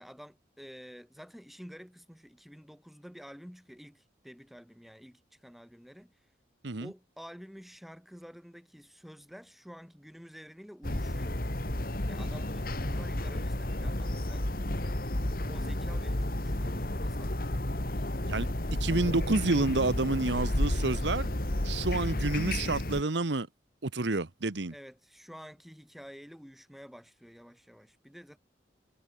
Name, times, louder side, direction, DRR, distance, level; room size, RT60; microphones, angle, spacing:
voice 1, 0.0-6.2 6.8-11.4 12.1-15.1 15.5-18.1 24.7-28.4, equal, ahead, 7.0 m, -50 dB
sound 1, 10.8-23.0, left 1 dB, 50° left, 2.2 m, -32 dB
voice 2, 18.3-21.3 21.6-23.5 23.8-24.7, right 2 dB, 75° right, 1.1 m, -29 dB
head